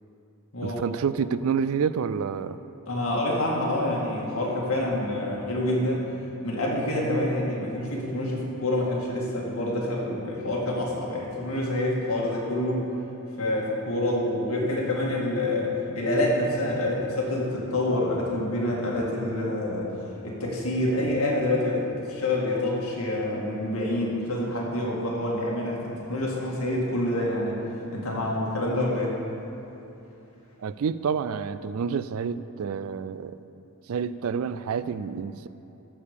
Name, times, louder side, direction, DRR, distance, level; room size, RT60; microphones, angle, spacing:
voice 1, 0.6-2.6 30.6-33.4 33.9-35.5, right 6 dB, 70° right, 14 dB, 0.4 m, -28 dB
voice 2, 2.9-6.0 6.4-12.8 13.4-19.9 20.2-25.8 26.1-27.6 27.9-29.2, left 1 dB, 70° left, -3 dB, 2.2 m, -27 dB
14.0 x 5.0 x 6.7 m, 2.9 s
head